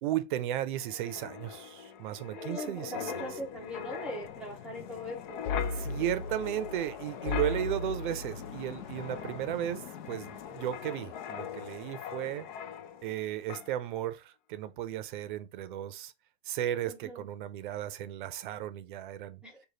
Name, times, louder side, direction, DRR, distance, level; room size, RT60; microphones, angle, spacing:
voice 1, 0.0-3.3 5.7-12.5 13.0-16.1 16.4-19.4, right 12 dB, 50° right, 0.6 m, -35 dB
Wind, 0.8-13.2 13.5-13.7, left 6 dB, 50° left, 0.6 m, -39 dB
voice 2, 2.3-5.4 16.8-17.3 19.4-19.6, equal, 5° right, 0.6 m, -41 dB
sound 1, 9.0-13.1, left 5 dB, 30° left, 1.5 m, -54 dB
4.9 x 2.3 x 4.0 m
supercardioid pair, 155°, 32 cm